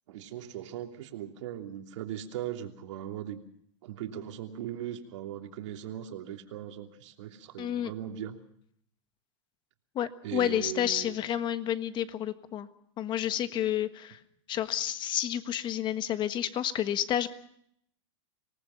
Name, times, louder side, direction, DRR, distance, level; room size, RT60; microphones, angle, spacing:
voice 1, 0.1-3.4 3.8-8.4 10.2-11.4, right 10 dB, 65° right, 4 dB, 3.0 m, -39 dB
voice 2, 7.6-7.9 9.9-12.7 13.0-14.2 14.5-17.3, left 11 dB, 30° left, 11 dB, 1.4 m, -30 dB
26.0 x 19.0 x 5.8 m, 0.69 s
supercardioid pair, 140°, 16 cm